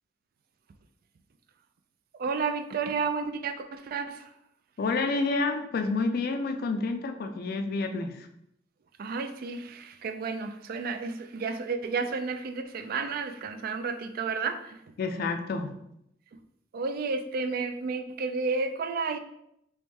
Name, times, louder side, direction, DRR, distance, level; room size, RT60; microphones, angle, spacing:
voice 1, 2.1-4.3 9.0-14.9 16.3-16.4 16.7-19.2, right 4 dB, 50° right, 8 dB, 0.3 m, -32 dB
voice 2, 4.8-8.3 15.0-15.8, left 3 dB, 55° left, 6 dB, 0.4 m, -29 dB
3.2 x 3.0 x 3.4 m, 0.78 s
head